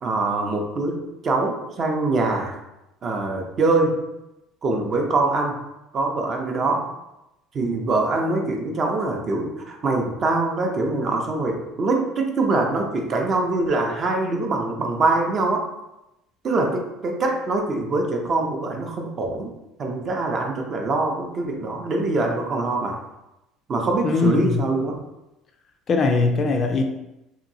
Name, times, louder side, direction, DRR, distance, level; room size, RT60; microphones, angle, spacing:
voice 1, 0.0-2.6 3.0-4.0 4.6-5.6 5.9-6.9 7.5-15.6 16.4-19.5 19.8-23.0 23.7-25.0, right 3 dB, 35° right, 2 dB, 0.5 m, -23 dB
voice 2, 24.0-24.6 25.9-26.8, left 4 dB, 35° left, 4 dB, 0.3 m, -20 dB
2.8 x 2.6 x 2.6 m, 0.91 s
cardioid pair, 135°, 0 cm